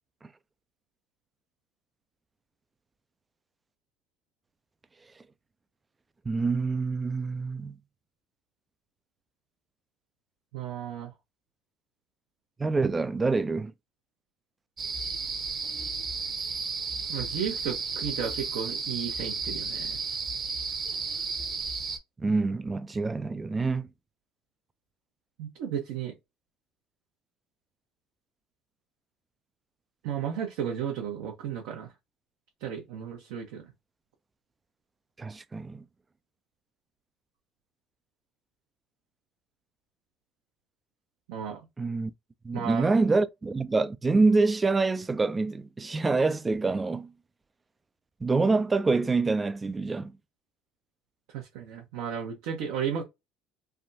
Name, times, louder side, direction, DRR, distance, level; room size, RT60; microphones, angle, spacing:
voice 1, 6.3-7.8 12.6-13.7 22.2-23.9 35.2-35.8 41.8-42.1 42.4-47.1 48.2-50.2, right 3 dB, 25° right, 0.4 m, -26 dB
voice 2, 10.5-11.1 17.1-20.0 25.4-26.1 30.0-31.9 32.6-33.7 41.3-41.6 42.5-42.9 51.3-53.0, right 8 dB, 75° right, 0.8 m, -34 dB
sound 1, 14.8-22.0, right 4 dB, 40° right, 0.9 m, -33 dB
3.4 x 2.2 x 2.6 m
supercardioid pair, 75°, 0 cm